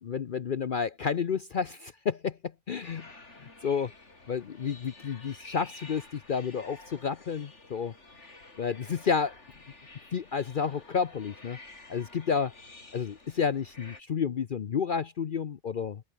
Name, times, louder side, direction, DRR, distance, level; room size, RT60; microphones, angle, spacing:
voice 1, 0.0-2.4 2.7-3.1 3.4-3.9 4.3-7.9 8.6-9.3 10.1-11.6 11.9-12.5 12.9-16.0, left 6 dB, 50° left, 0.8 m, -30 dB
sound 1, 2.8-14.0, left 3 dB, 65° left, 4.0 m, -51 dB
open air
omnidirectional pair, 1.3 m